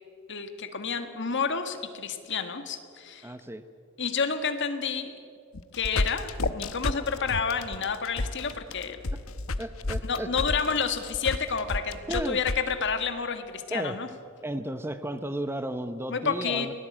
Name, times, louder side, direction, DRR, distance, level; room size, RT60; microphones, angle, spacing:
voice 1, 0.3-3.3 4.0-5.2 5.7-9.0 10.0-14.1 16.1-16.7, left 5 dB, 60° left, 8 dB, 1.7 m, -30 dB
voice 2, 3.2-3.6 9.1-9.2 9.6-10.8 12.1-12.4 13.7-14.0 14.4-16.7, right 1 dB, 10° right, 10 dB, 0.7 m, -34 dB
sound 1, 5.5-12.6, left 2 dB, 75° left, 0.9 m, -31 dB
23.0 x 18.0 x 8.7 m, 2.3 s
head